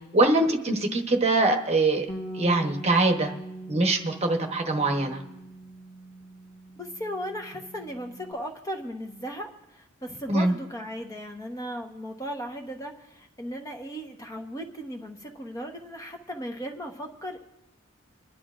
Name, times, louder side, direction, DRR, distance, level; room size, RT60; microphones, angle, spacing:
voice 1, 0.1-2.1 2.3-3.3 3.7-5.2 10.3-10.5, right 2 dB, 30° right, 4 dB, 1.0 m, -23 dB
Bass guitar, 2.1-8.3, right 1 dB, 45° left, 1.1 m, -42 dB
voice 2, 6.8-17.5, equal, 15° left, 3 dB, 1.0 m, -36 dB
27.0 x 11.5 x 2.5 m, 0.97 s
head